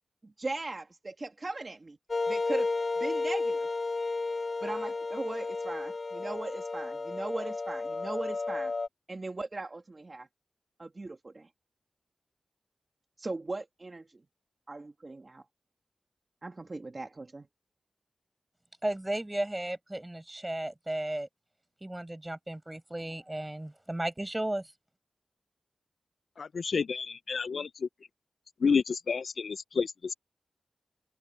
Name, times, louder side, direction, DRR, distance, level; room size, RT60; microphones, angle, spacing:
voice 1, 0.2-2.0 2.3-2.7 3.0-3.7 4.6-8.7 9.1-10.3 10.8-11.5 13.2-14.1 14.7-15.4 16.4-17.5, right 2 dB, 35° right, 2.3 m, -39 dB
sound 1, 2.1-8.9, left 3 dB, 45° left, 4.3 m, -32 dB
voice 2, 18.8-21.3 21.8-24.7, right 1 dB, 15° right, 7.0 m, -34 dB
voice 3, 26.4-27.9 28.6-30.1, left 5 dB, 75° left, 0.4 m, -30 dB
open air
wide cardioid pair, 95°, 0 cm